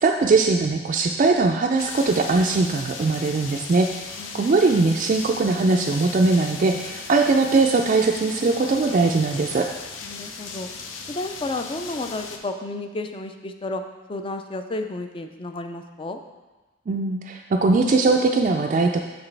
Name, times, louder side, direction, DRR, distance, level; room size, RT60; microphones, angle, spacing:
voice 1, 0.0-3.9 4.3-9.7 16.9-19.0, right 3 dB, 40° right, 1 dB, 0.3 m, -20 dB
sound 1, 1.8-12.4, left 5 dB, 90° left, 0.6 m, -37 dB
voice 2, 4.2-4.6 10.0-10.7 11.1-13.8 14.1-16.2, left 2 dB, 25° left, 6 dB, 0.4 m, -32 dB
7.1 x 6.0 x 3.3 m, 1.2 s
head